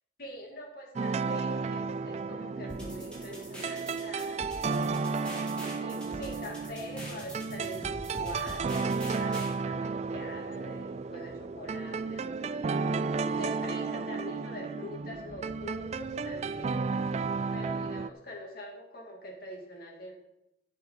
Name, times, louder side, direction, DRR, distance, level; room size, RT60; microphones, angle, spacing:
voice 1, 0.2-4.4 5.7-12.8 13.3-16.9 17.5-20.1, left 1 dB, 50° left, -1 dB, 2.5 m, -44 dB
sound 1, 1.0-18.1, right 4 dB, 35° right, 0.3 m, -33 dB
sound 2, 2.7-9.5, equal, 5° left, 3.1 m, -44 dB
13.0 x 6.1 x 5.7 m, 0.84 s
head